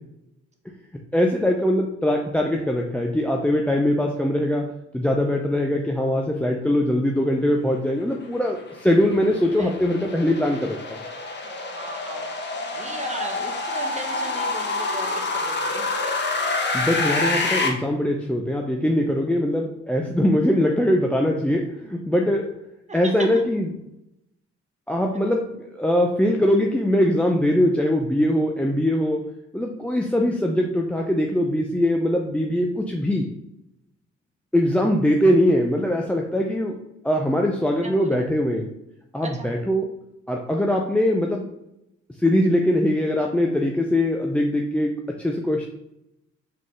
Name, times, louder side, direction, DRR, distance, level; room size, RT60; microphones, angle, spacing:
voice 1, 1.1-11.0 16.7-22.6 22.9-23.7 24.9-33.3 34.5-38.7 39.1-39.9 40.3-41.5 42.2-45.7, left 1 dB, 5° left, 1 dB, 0.4 m, -22 dB
sound 1, 8.1-17.7, left 3 dB, 35° left, 0.9 m, -27 dB
voice 2, 11.7-12.3 12.7-15.9 22.9-23.1 37.8-38.2 39.2-39.5, right 3 dB, 25° right, 3 dB, 0.9 m, -36 dB
4.1 x 3.8 x 3.1 m, 0.85 s
cardioid pair, 90°, 30 cm